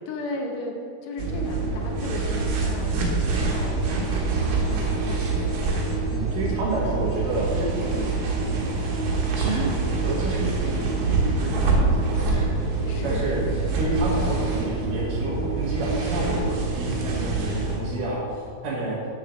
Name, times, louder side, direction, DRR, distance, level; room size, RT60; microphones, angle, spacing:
voice 1, 0.1-0.7 1.0-5.6 7.9-8.2 12.9-13.5, left 2 dB, 65° left, 1 dB, 1.8 m, -36 dB
sound 1, 1.2-17.8, right 3 dB, 85° right, 3.3 m, -25 dB
voice 2, 6.0-7.9 8.5-8.8 9.3-9.8 10.0-12.5 12.8-19.0, right 2 dB, 70° right, -6 dB, 3.1 m, -30 dB
7.8 x 7.3 x 6.5 m, 2.4 s
omnidirectional pair, 4.2 m